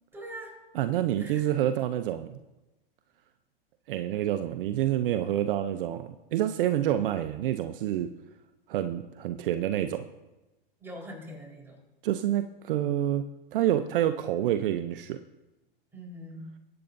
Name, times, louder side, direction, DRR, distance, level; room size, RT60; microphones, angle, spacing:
voice 1, 0.1-0.5 1.2-1.5 10.8-11.8 15.9-16.5, equal, 10° right, -2 dB, 4.2 m, -42 dB
voice 2, 0.7-2.4 3.9-8.1 8.7-10.0 12.0-13.3 13.5-15.2, right 12 dB, 65° right, 9 dB, 0.7 m, -28 dB
21.0 x 8.8 x 2.7 m, 1.0 s
hypercardioid pair, 125°, 29 cm